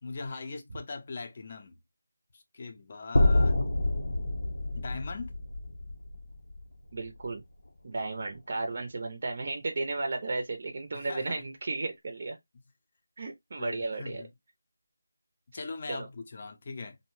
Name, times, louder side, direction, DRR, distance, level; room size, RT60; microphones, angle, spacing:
voice 1, 0.0-1.7 2.3-3.7 4.8-5.4 10.9-11.2 13.6-14.3 15.5-17.0, left 3 dB, 35° left, 0.5 m, -40 dB
sound 1, 3.1-7.3, left 2 dB, 70° left, 0.7 m, -27 dB
voice 2, 6.9-7.4 7.8-12.4 13.2-14.3 15.9-16.1, right 3 dB, 40° right, 0.5 m, -34 dB
2.5 x 2.1 x 2.9 m
figure-of-eight pair, 170°, 0 cm